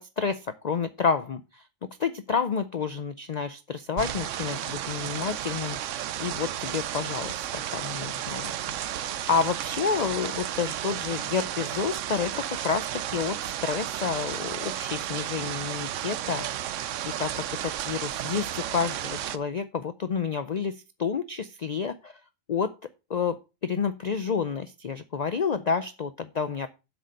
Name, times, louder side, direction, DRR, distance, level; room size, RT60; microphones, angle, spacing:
voice 1, 0.0-1.6 2.0-5.8 6.2-8.5 8.9-16.5 17.1-22.2 22.5-22.7 23.1-26.7, left 6 dB, 60° left, 12 dB, 0.4 m, -29 dB
sound 1, 4.0-19.4, right 11 dB, 70° right, 1.0 m, -33 dB
7.9 x 6.6 x 5.2 m, 0.28 s
omnidirectional pair, 1.4 m